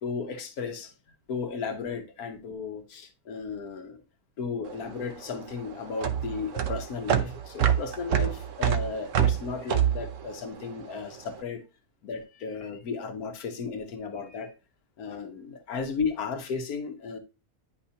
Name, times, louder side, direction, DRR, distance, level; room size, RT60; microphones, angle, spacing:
voice 1, 0.0-0.9 1.3-4.0 4.4-11.6 12.0-14.5 15.0-17.2, left 5 dB, 80° left, 1.5 m, -34 dB
sound 1, 4.7-11.2, right 10 dB, 65° right, 1.0 m, -27 dB
10.0 x 5.3 x 2.8 m
omnidirectional pair, 1.5 m